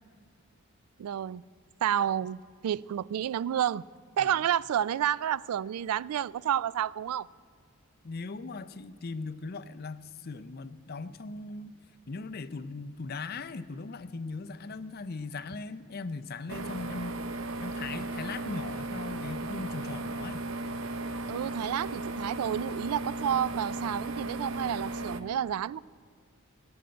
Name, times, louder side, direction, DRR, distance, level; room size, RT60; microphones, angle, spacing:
voice 1, 1.0-1.4 1.8-3.8 4.2-7.3 21.3-25.8, right 10 dB, 80° right, 22 dB, 0.3 m, -30 dB
voice 2, 8.0-11.7 12.1-17.2 17.6-20.5, left 3 dB, 45° left, 11 dB, 0.5 m, -39 dB
sound 1, 16.5-25.2, right 2 dB, 60° right, 0.8 m, -36 dB
16.5 x 8.8 x 7.9 m, 2.2 s
head